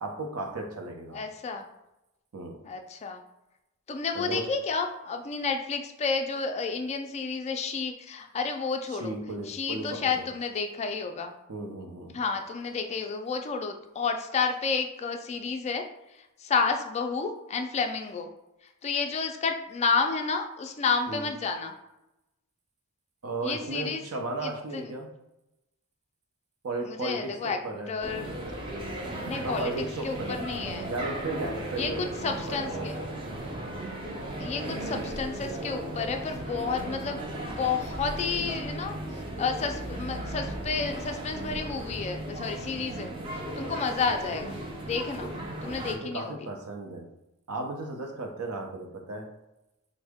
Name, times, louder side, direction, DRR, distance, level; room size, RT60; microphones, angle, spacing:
voice 1, 0.0-1.2 2.3-2.6 4.1-4.4 8.9-10.3 11.5-12.2 21.1-21.3 23.2-25.1 26.6-27.9 29.4-30.4 30.9-32.0 32.5-32.9 45.9-47.1 47.5-49.3, right 2 dB, 70° right, 3 dB, 0.6 m, -35 dB
voice 2, 1.1-1.7 2.6-3.2 3.9-9.1 9.5-11.4 12.1-15.8 16.4-18.3 18.8-21.7 23.4-24.0 24.4-24.9 26.9-27.6 27.9-28.5 29.2-29.7 30.0-30.9 31.8-33.0 34.4-38.9 39.4-43.1 43.6-45.3 45.6-46.4, left 5 dB, 30° left, 5 dB, 0.3 m, -31 dB
sound 1, 28.0-45.9, right 1 dB, 25° right, 0.5 m, -36 dB
3.5 x 2.0 x 3.5 m, 0.93 s
head